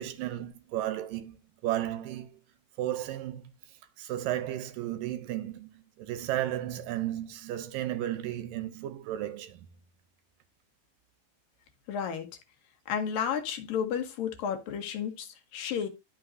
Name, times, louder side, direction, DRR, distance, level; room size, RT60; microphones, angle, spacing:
voice 1, 0.0-1.4 1.6-2.4 2.8-9.7, right 13 dB, 75° right, 2.3 m, -34 dB
voice 2, 11.9-12.3 12.9-15.9, left 8 dB, 75° left, 2.8 m, -32 dB
11.5 x 5.9 x 2.6 m
omnidirectional pair, 4.2 m